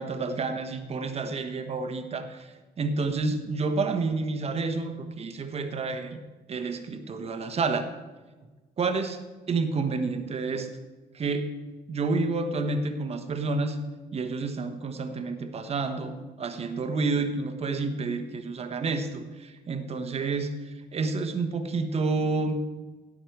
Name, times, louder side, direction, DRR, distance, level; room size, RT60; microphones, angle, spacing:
voice 1, 0.0-6.2 6.5-7.9 8.8-9.2 9.5-10.7 11.1-11.5 11.9-13.8 14.1-22.6, right 3 dB, 35° right, 7 dB, 1.2 m, -29 dB
17.0 x 6.4 x 4.7 m, 1.2 s
cardioid pair, 110°, 17 cm